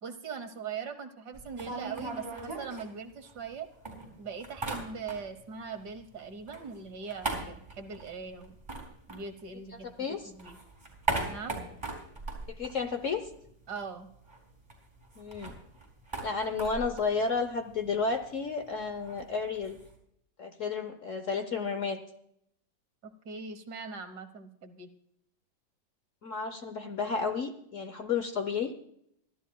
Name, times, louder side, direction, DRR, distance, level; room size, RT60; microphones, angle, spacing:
voice 1, 0.0-3.7 4.2-8.6 9.1-10.6 11.3-11.6 13.7-14.1 23.0-24.9, right 5 dB, 60° right, 9 dB, 1.7 m, -41 dB
sound 1, 1.3-3.5 3.8-5.5 5.7-9.9 10.2-13.5 13.8-13.9 14.1-19.9, right 2 dB, 15° right, 4.1 m, -39 dB
voice 2, 9.7-10.2 12.5-13.3 15.2-15.5 16.2-19.8 20.4-22.0 26.2-28.7, left 5 dB, 55° left, 8 dB, 1.0 m, -32 dB
23.5 x 13.0 x 2.3 m, 0.73 s
omnidirectional pair, 2.0 m